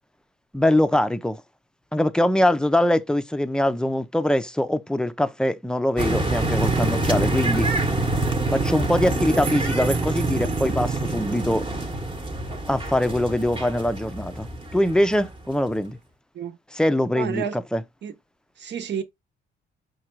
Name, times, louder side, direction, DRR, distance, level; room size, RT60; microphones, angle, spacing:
voice 1, 0.5-1.4 1.9-7.7 8.5-11.6 12.7-16.0 16.7-17.8, left 1 dB, 5° left, 0.5 m, -23 dB
sound 1, 6.0-15.4, right 2 dB, 25° right, 1.0 m, -26 dB
voice 2, 17.1-17.6 18.0-18.1 18.6-19.0, right 8 dB, 65° right, 1.0 m, -30 dB
4.9 x 2.3 x 4.4 m
cardioid pair, 90°, 20 cm